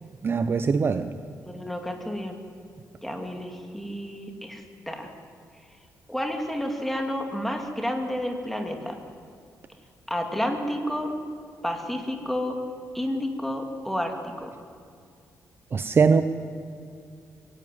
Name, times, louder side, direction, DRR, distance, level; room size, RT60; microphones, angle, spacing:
voice 1, 0.2-1.1 15.7-16.2, right 5 dB, 35° right, 11 dB, 0.7 m, -21 dB
voice 2, 1.4-2.4 3.0-5.1 6.1-9.0 10.1-11.1 11.6-12.6 12.9-14.5, equal, 5° left, 3 dB, 2.7 m, -30 dB
24.0 x 16.5 x 9.5 m, 2.3 s
cardioid pair, 125°, 6 cm